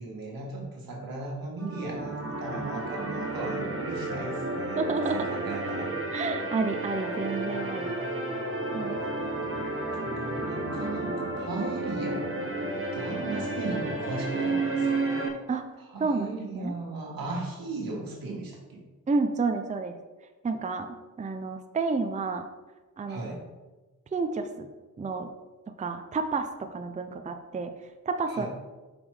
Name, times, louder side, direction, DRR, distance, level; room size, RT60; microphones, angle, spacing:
voice 1, 0.0-5.9 9.0-9.6 9.9-12.5 12.9-15.2 15.9-18.8 23.1-23.4 28.3-28.5, right 3 dB, 85° right, -1 dB, 1.7 m, -37 dB
sound 1, 1.6-15.3, right 2 dB, 40° right, 1.0 m, -32 dB
voice 2, 4.8-5.3 6.1-7.9 8.7-9.0 13.3-13.5 15.5-15.7 16.0-16.7 19.1-19.9 20.4-22.5 23.0-23.2 24.1-24.7 25.0-25.3 25.8-27.7 28.1-28.5, right 4 dB, 20° right, 7 dB, 0.4 m, -30 dB
5.4 x 5.1 x 4.8 m, 1.2 s
wide cardioid pair, 130°, 34 cm